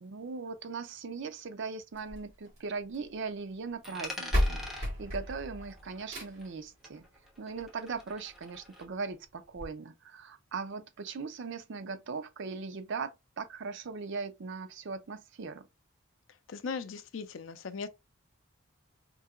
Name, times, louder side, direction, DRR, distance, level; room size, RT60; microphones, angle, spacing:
voice 1, 0.0-7.0 7.4-15.7, right 4 dB, 60° right, 0.5 m, -39 dB
sound 1, 1.9-3.1 4.0-4.1 4.3-6.6 7.9-8.0 8.5-8.6 8.9-9.0 9.6-9.7, equal, 35° right, 2.5 m, -33 dB
Coin (dropping), 3.8-6.6 6.8-8.9, left 1 dB, ahead, 0.9 m, -45 dB
voice 2, 16.5-17.9, left 5 dB, 65° left, 0.5 m, -38 dB
4.6 x 2.8 x 2.4 m
head